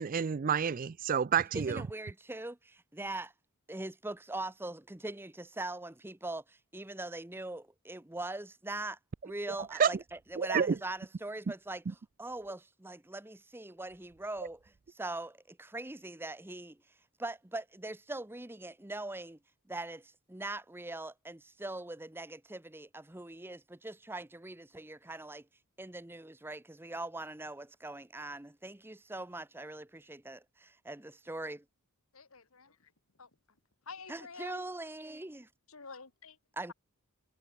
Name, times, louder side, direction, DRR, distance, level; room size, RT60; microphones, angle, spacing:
voice 1, 0.0-1.9 9.8-9.9 10.4-10.8, right 7 dB, 40° right, 0.4 m, -29 dB
voice 2, 1.5-3.3 3.7-9.0 9.2-11.8 12.2-16.8 17.2-19.4 19.7-25.5 25.8-31.6 34.1-35.5 36.5-36.7, right 2 dB, 10° right, 0.7 m, -42 dB
voice 3, 32.1-32.8 33.2-33.3 33.9-34.6 35.7-36.4, left 4 dB, 70° left, 2.2 m, -49 dB
head